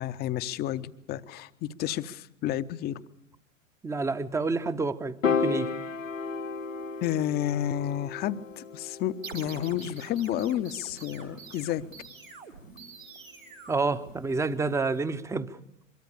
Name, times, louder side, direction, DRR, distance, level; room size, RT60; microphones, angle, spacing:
voice 1, 0.0-3.0 7.0-11.8, left 11 dB, 25° left, 0.8 m, -31 dB
voice 2, 3.8-5.7 13.7-15.6, right 3 dB, 5° right, 0.8 m, -29 dB
Piano, 5.2-11.6, left 5 dB, 75° left, 1.0 m, -34 dB
sound 1, 9.2-14.7, right 5 dB, 85° right, 4.4 m, -46 dB
24.0 x 22.5 x 6.9 m
figure-of-eight pair, 95°, 39 cm